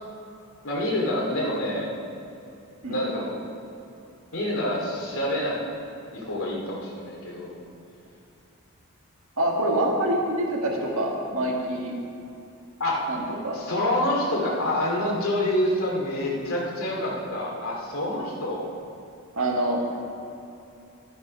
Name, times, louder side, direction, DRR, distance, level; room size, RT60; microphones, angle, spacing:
voice 1, 0.6-1.9 2.9-3.3 4.3-5.6 6.1-7.5 12.8-13.0 13.5-18.7, left 1 dB, 75° left, -3 dB, 2.5 m, -27 dB
voice 2, 9.4-11.9 13.1-13.6 19.4-19.8, right 1 dB, 70° right, -1 dB, 1.6 m, -26 dB
11.5 x 8.4 x 5.4 m, 2.7 s
head